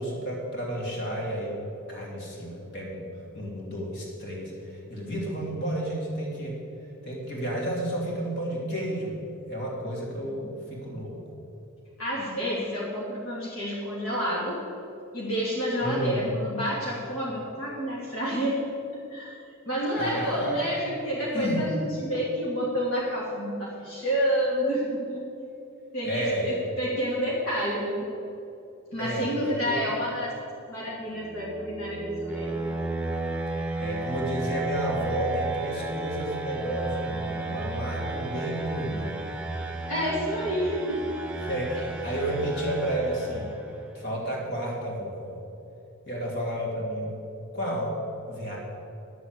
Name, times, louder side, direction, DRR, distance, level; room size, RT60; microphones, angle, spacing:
voice 1, 0.0-1.6 1.9-3.1 3.3-6.6 7.0-11.2 15.8-16.3 19.9-20.8 21.3-21.6 26.0-26.5 29.0-29.8 33.8-39.2 41.4-43.5 43.9-45.4 46.0-47.1 47.5-48.0 48.3-48.6, right 1 dB, 55° left, -3 dB, 3.1 m, -31 dB
voice 2, 12.0-14.6 15.1-18.6 18.9-25.3 25.9-28.1 28.9-30.3 30.7-32.6 39.9-41.2, equal, 75° left, -5 dB, 2.5 m, -29 dB
sound 1, 31.1-43.9, right 2 dB, 5° right, 1.0 m, -33 dB
11.0 x 7.2 x 8.2 m, 2.8 s
head